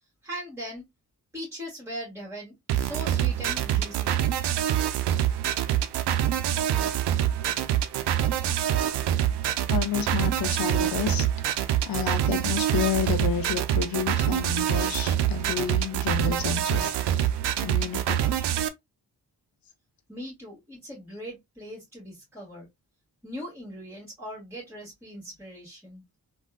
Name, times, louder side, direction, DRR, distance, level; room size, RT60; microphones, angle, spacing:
voice 1, 0.2-0.8 1.3-4.2 20.1-22.7 23.2-26.0, equal, 5° right, 1.8 m, -40 dB
sound 1, 2.7-18.7, right 11 dB, 75° right, 0.5 m, -25 dB
voice 2, 9.7-11.3 11.9-17.2 17.6-18.2, left 8 dB, 60° left, 0.6 m, -30 dB
3.4 x 2.3 x 2.2 m
cardioid pair, 65°, 41 cm